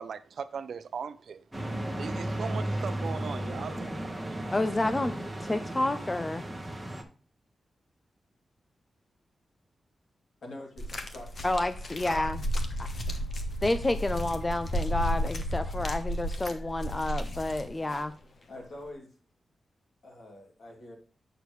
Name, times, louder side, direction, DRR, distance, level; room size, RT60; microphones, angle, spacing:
voice 1, 0.0-1.5 2.0-4.5, right 6 dB, 70° right, 0.6 m, -39 dB
sound 1, 1.5-7.0, right 1 dB, 10° right, 1.1 m, -34 dB
voice 2, 4.5-5.1 5.4-6.4 11.4-12.4 12.8-12.9 13.6-18.1, left 2 dB, 20° left, 0.4 m, -29 dB
voice 3, 10.4-10.9 11.1-11.3 18.5-19.1 20.0-21.0, left 1 dB, 70° left, 2.7 m, -44 dB
sound 2, 10.8-18.0 18.9-19.0, equal, 45° left, 1.0 m, -33 dB
8.2 x 6.6 x 3.1 m
wide cardioid pair, 150°, 0 cm